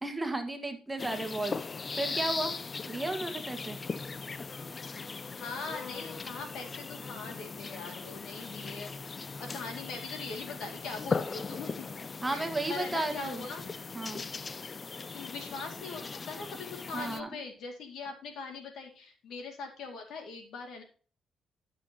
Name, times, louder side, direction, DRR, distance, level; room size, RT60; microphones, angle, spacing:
voice 1, 0.0-2.6 2.9-3.8 12.2-13.4 13.9-14.2 16.9-17.3, right 2 dB, 15° right, 6 dB, 1.5 m, -34 dB
sound 1, 1.0-17.2, left 4 dB, 35° left, 0.4 m, -39 dB
voice 2, 5.4-8.9 9.2-11.9 12.3-13.7 15.1-20.8, left 4 dB, 75° left, 3 dB, 2.2 m, -41 dB
11.0 x 6.2 x 2.9 m, 0.39 s
cardioid pair, 90°, 0 cm